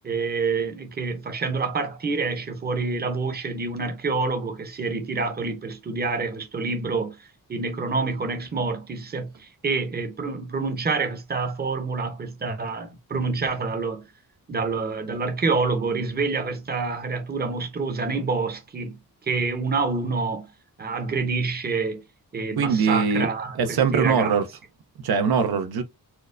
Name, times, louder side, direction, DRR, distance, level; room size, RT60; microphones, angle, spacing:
voice 1, 0.0-7.2 7.5-14.0 14.5-19.0 19.2-20.5 20.8-22.0 22.3-24.4, right 4 dB, 25° right, 0.7 m, -27 dB
voice 2, 22.6-23.3 23.6-24.5 25.0-25.8, right 6 dB, 80° right, 0.7 m, -22 dB
4.4 x 2.1 x 2.5 m
wide cardioid pair, 125°, 37 cm